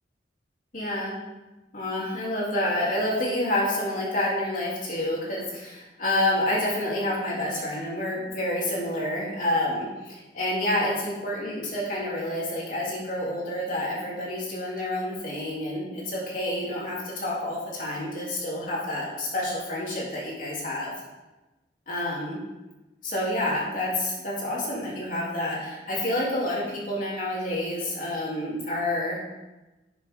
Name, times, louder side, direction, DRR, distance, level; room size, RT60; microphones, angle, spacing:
voice 1, 0.7-1.2 1.7-20.9 21.9-22.4 23.0-29.2, left 1 dB, 45° left, -5 dB, 3.2 m, -28 dB
11.5 x 7.3 x 3.7 m, 1.1 s
head